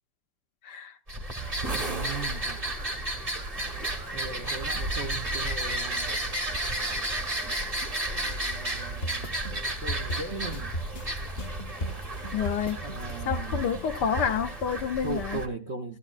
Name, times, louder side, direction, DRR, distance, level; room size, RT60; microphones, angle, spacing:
voice 1, 0.6-0.9 12.3-12.8 13.2-15.4, left 7 dB, 65° left, 1.2 m, -29 dB
sound 1, 1.1-15.5, right 1 dB, 25° right, 1.0 m, -32 dB
voice 2, 1.6-2.6 4.1-6.3 8.2-10.7 12.8-13.7 15.0-16.0, right 4 dB, 55° right, 0.7 m, -38 dB
sound 2, 9.0-14.3, equal, 40° left, 0.9 m, -34 dB
14.0 x 14.0 x 2.4 m
omnidirectional pair, 2.2 m